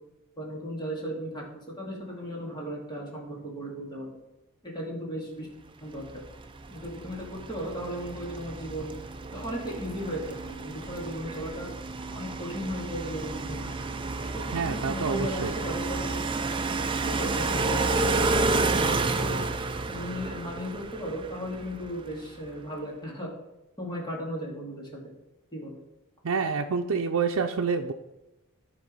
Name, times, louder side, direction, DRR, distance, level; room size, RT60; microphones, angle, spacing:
voice 1, 0.4-4.1 4.6-5.5 5.8-6.2 6.7-8.9 9.3-11.7 12.1-13.7 14.3-16.2 17.0-19.4 19.8-23.3 23.8-25.1 25.5-25.8, equal, 20° left, -3 dB, 2.7 m, -36 dB
sound 1, 6.1-22.2, right 3 dB, 20° right, 0.5 m, -31 dB
voice 2, 14.5-15.5 26.2-27.9, right 5 dB, 80° right, 2 dB, 0.6 m, -28 dB
12.0 x 4.4 x 5.6 m, 0.98 s
head